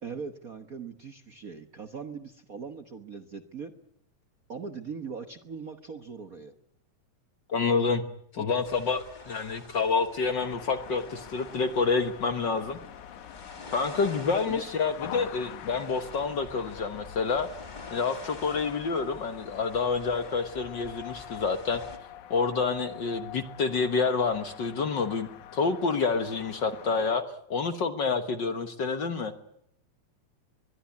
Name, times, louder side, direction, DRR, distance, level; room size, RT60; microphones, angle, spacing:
voice 1, 0.0-3.7 4.5-6.5 8.4-8.5 14.5-14.7, right 5 dB, 55° right, 7 dB, 0.9 m, -40 dB
voice 2, 7.5-8.0 8.3-12.8 13.7-17.5 17.9-21.8 22.3-27.2 27.5-29.3, left 4 dB, 50° left, 8 dB, 1.5 m, -28 dB
sound 1, 8.6-22.0, left 3 dB, 20° left, 1.5 m, -49 dB
sound 2, 10.2-27.2, left 11 dB, 85° left, 2.6 m, -45 dB
23.5 x 21.0 x 8.5 m, 0.75 s
omnidirectional pair, 3.3 m